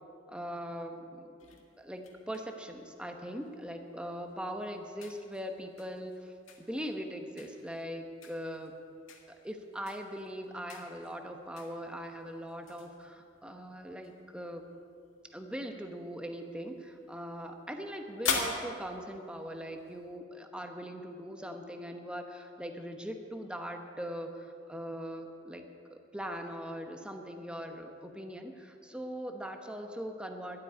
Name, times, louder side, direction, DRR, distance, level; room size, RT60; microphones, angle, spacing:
voice 1, 0.3-1.3 1.8-8.7 9.4-14.6 15.3-25.6 25.9-30.6, equal, 5° right, 4 dB, 1.0 m, -41 dB
sound 1, 1.4-20.2, left 5 dB, 85° left, 1.8 m, -44 dB
12.5 x 8.5 x 9.4 m, 2.4 s
head